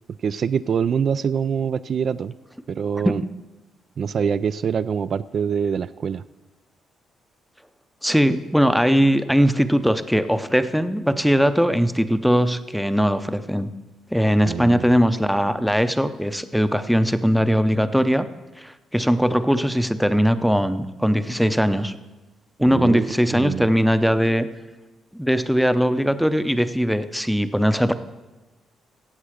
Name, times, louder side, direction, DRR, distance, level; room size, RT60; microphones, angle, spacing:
voice 1, 0.2-2.3 2.7-3.2 4.0-6.2 14.5-14.9 22.7-23.7, right 7 dB, 55° right, 13 dB, 0.3 m, -24 dB
voice 2, 8.0-13.7 14.1-18.3 18.6-21.9 22.6-24.5 25.1-27.9, equal, ahead, 11 dB, 0.6 m, -20 dB
16.0 x 7.8 x 5.0 m, 1.1 s
cardioid pair, 90°, 0 cm